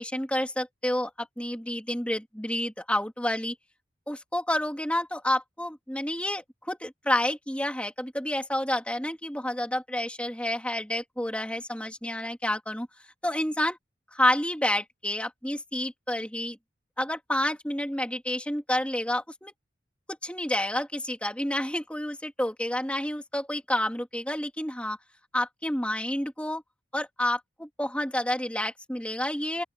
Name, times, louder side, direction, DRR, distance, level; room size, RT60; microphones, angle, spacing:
voice 1, 0.0-3.6 4.1-12.9 13.2-13.8 14.2-16.6 17.0-19.5 20.2-25.0 25.3-26.6 26.9-29.6, left 1 dB, 5° left, 3.4 m, -29 dB
open air
head